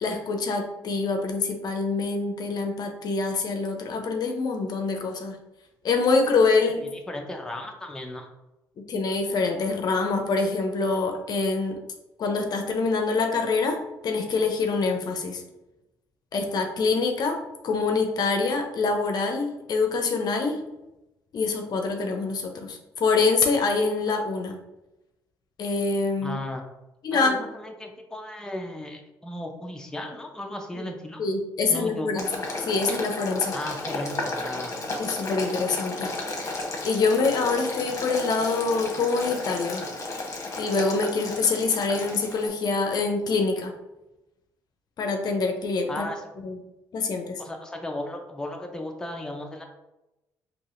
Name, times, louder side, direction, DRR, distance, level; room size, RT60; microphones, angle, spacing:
voice 1, 0.0-5.4 5.8-6.9 8.8-11.8 12.2-15.4 16.3-20.6 21.3-24.6 25.6-26.4 27.0-27.4 30.8-30.9 31.2-32.3 32.7-33.6 35.0-36.1 36.8-39.8 40.6-43.7 45.0-46.1 46.4-46.6 46.9-47.4, left 4 dB, 55° left, 4 dB, 0.6 m, -25 dB
voice 2, 6.9-8.3 26.2-26.6 27.1-31.2 31.7-32.2 33.5-34.7 45.9-46.2 47.4-49.6, left 1 dB, 10° left, 2 dB, 0.6 m, -35 dB
Boiling, 32.2-42.5, left 2 dB, 40° left, 1.0 m, -33 dB
3.9 x 2.9 x 2.5 m, 0.96 s
supercardioid pair, 70°, 8 cm